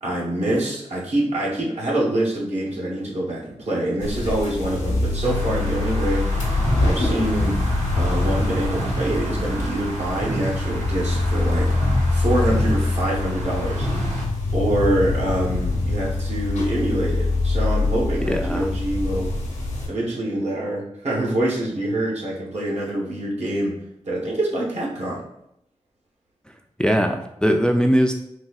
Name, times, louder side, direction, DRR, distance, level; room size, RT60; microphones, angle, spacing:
voice 1, 0.0-6.3 6.8-7.6 7.9-11.7 12.1-14.1 14.5-19.3 19.9-23.7 24.1-25.2, right 1 dB, 65° right, -4 dB, 1.1 m, -25 dB
sound 1, 4.0-19.9, left 2 dB, 90° left, 0.8 m, -24 dB
sound 2, 5.2-14.2, right 1 dB, 90° right, 0.7 m, -30 dB
voice 2, 18.2-18.7 26.8-28.1, equal, 5° left, 4 dB, 0.3 m, -20 dB
4.0 x 2.7 x 2.3 m, 0.77 s
cardioid pair, 45°, 12 cm